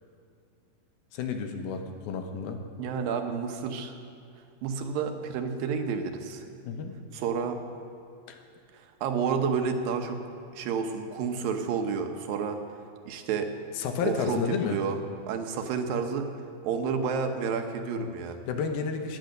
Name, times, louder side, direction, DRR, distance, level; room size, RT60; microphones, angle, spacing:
voice 1, 1.1-2.6 6.6-6.9 8.3-8.4 13.7-14.8 17.9-18.1 18.5-19.2, left 6 dB, 90° left, 5 dB, 3.0 m, -31 dB
voice 2, 2.8-3.9 4.6-6.4 7.1-7.6 8.7-10.2 10.5-12.6 13.1-13.5 14.0-15.0 15.3-16.3 16.6-18.4, right 6 dB, 75° right, 5 dB, 2.6 m, -30 dB
16.5 x 10.5 x 6.6 m, 2.4 s
omnidirectional pair, 4.2 m